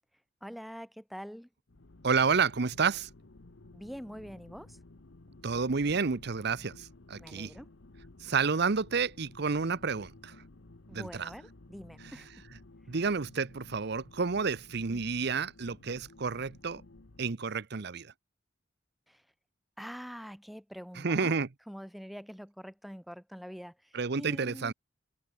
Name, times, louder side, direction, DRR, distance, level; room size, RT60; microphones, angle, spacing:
voice 1, 0.4-1.5 3.7-4.8 7.2-7.7 10.9-12.4 14.9-15.1 19.1-19.2 19.8-21.3 21.7-24.7, equal, ahead, 0.9 m, -45 dB
sound 1, 1.7-17.4, left 2 dB, 80° left, 1.1 m, -54 dB
voice 2, 2.0-3.1 5.4-7.5 8.2-10.4 10.9-11.3 12.0-12.2 12.9-16.8 17.2-18.1 20.9-21.5 23.9-24.7, right 5 dB, 60° right, 0.8 m, -30 dB
head